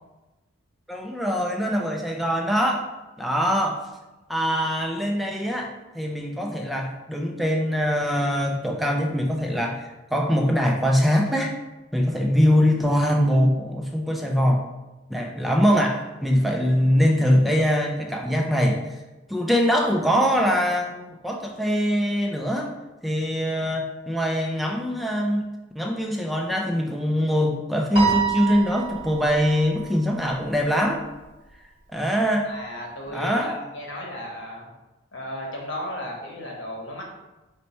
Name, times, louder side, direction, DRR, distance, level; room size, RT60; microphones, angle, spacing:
voice 1, 0.9-2.9 3.2-3.8 4.3-11.6 11.9-14.7 15.1-18.9 19.3-22.7 23.0-25.4 25.8-31.0 31.9-32.5 33.1-33.6, equal, ahead, 0 dB, 0.3 m, -23 dB
Piano, 28.0-30.4, right 6 dB, 25° right, 1.0 m, -28 dB
voice 2, 32.2-34.7 35.1-37.1, left 1 dB, 65° left, -1 dB, 1.0 m, -35 dB
4.3 x 2.2 x 4.1 m, 1.1 s
head